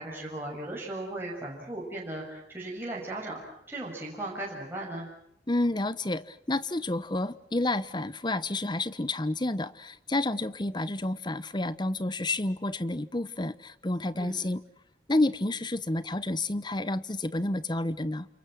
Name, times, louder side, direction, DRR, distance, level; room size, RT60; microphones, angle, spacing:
voice 1, 0.0-3.4 3.7-5.1 14.1-14.3, right 1 dB, 15° right, -3 dB, 6.6 m, -37 dB
voice 2, 5.5-14.6 15.1-18.3, left 2 dB, 25° left, 16 dB, 1.0 m, -30 dB
30.0 x 28.0 x 6.2 m, 0.76 s
head